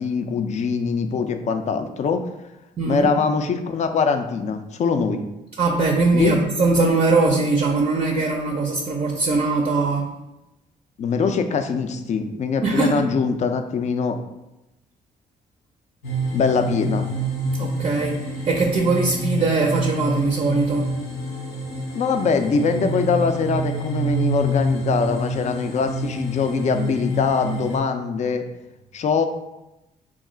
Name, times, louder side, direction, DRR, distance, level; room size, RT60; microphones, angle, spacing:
voice 1, 0.0-2.3 2.8-5.2 6.1-6.4 11.0-14.2 16.3-17.1 21.9-28.5 28.9-29.3, left 5 dB, 40° left, 7 dB, 0.4 m, -22 dB
voice 2, 2.8-3.1 5.6-10.1 12.6-13.0 17.5-20.9, right 3 dB, 35° right, 1 dB, 0.4 m, -21 dB
sound 1, 16.0-27.8, right 1 dB, 90° left, 0.6 m, -27 dB
2.3 x 2.0 x 3.7 m, 0.94 s
hypercardioid pair, 50°, 18 cm